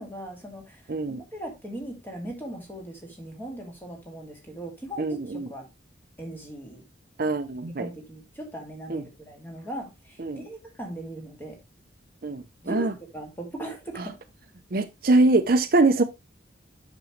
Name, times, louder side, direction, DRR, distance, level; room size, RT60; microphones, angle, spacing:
voice 1, 0.0-5.7 6.2-6.8 7.7-11.6 12.6-14.2, right 1 dB, 10° left, 2.2 m, -39 dB
voice 2, 0.9-1.2 5.0-5.5 7.2-7.9 8.9-9.0 10.2-10.4 12.2-12.9 14.7-16.0, right 2 dB, 50° right, 0.6 m, -23 dB
7.7 x 6.2 x 3.1 m
head